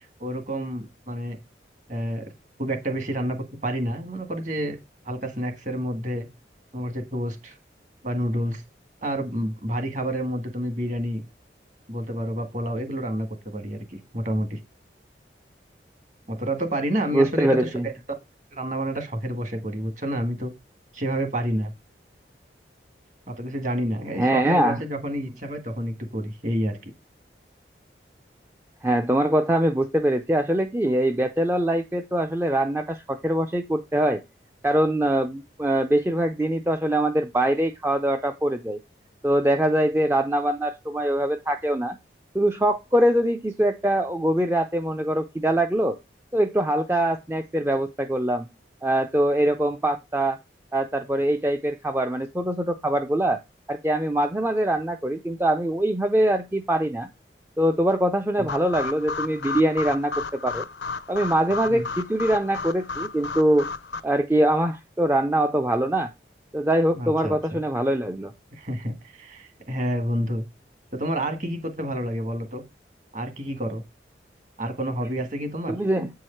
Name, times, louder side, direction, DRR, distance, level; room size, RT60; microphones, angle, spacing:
voice 1, 0.0-1.4 1.9-2.3 2.6-4.8 5.0-6.3 6.7-7.6 8.0-8.6 9.0-11.2 11.9-14.6 16.3-17.5 18.5-20.5 20.9-21.7 23.3-26.9 58.4-58.5 61.7-61.8 66.9-67.6 68.5-70.5 70.9-72.6 73.1-73.8 74.6-75.8, equal, 40° right, 1.6 m, -29 dB
voice 2, 17.1-17.9 24.2-24.8 28.8-34.2 34.6-38.8 39.2-42.0 42.3-46.0 46.3-48.5 48.8-50.4 50.7-53.4 53.7-57.1 57.6-60.7 61.1-63.7 64.0-66.1 66.5-68.3 75.7-76.1, right 1 dB, 15° right, 0.4 m, -23 dB
sound 1, 58.5-64.0, left 4 dB, 80° left, 0.6 m, -33 dB
8.2 x 4.7 x 4.4 m
head